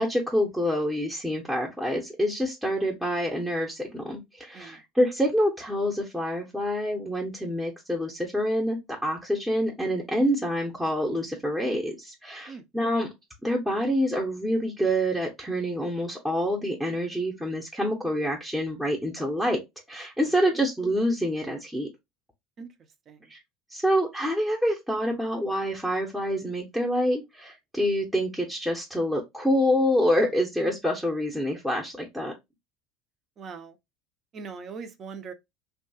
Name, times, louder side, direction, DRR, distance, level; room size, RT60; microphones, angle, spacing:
voice 1, 0.0-13.1 13.4-19.6 19.9-21.9 23.3-23.4 23.7-32.3, equal, 5° right, 0.7 m, -27 dB
voice 2, 20.3-20.6 22.6-22.7 23.1-23.3 33.4-33.8 34.3-35.3, right 5 dB, 40° right, 0.6 m, -41 dB
2.7 x 2.3 x 2.7 m
supercardioid pair, 105°, 0 cm